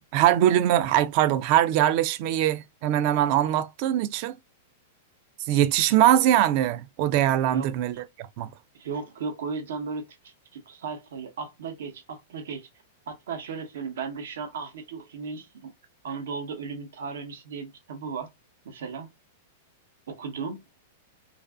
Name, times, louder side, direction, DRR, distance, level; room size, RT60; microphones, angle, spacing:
voice 1, 0.1-4.4 5.5-7.9 8.4-8.5, right 12 dB, 45° right, 0.3 m, -22 dB
voice 2, 7.4-8.0 8.7-12.7 13.1-15.7 16.0-18.3 18.6-19.1 20.1-20.6, right 5 dB, 80° right, 0.8 m, -36 dB
2.5 x 2.5 x 2.2 m
supercardioid pair, 145°, 0 cm